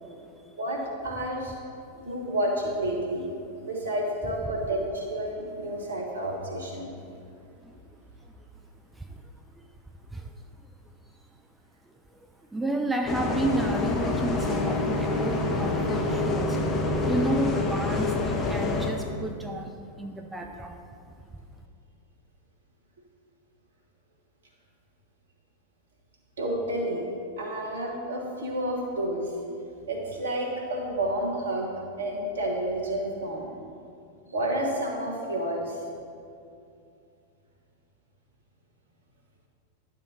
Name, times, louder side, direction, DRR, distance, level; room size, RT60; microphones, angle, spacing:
voice 1, 0.0-0.6 1.9-2.0 7.6-7.7 8.2-8.3 8.9-9.2 9.5-9.7 10.1-10.4 12.1-12.2 12.5-16.6 17.1-20.8, right 1 dB, 10° right, 4 dB, 0.4 m, -32 dB
voice 2, 0.6-1.6 2.0-3.3 3.6-6.9 26.4-27.0 27.4-29.3 29.9-31.7 32.0-33.5 34.3-35.8, right 1 dB, 70° right, -1 dB, 1.4 m, -30 dB
Bus, 13.1-18.9, left 2 dB, 25° left, 0.8 m, -27 dB
10.0 x 4.5 x 4.0 m, 2.5 s
figure-of-eight pair, 90°, 0 cm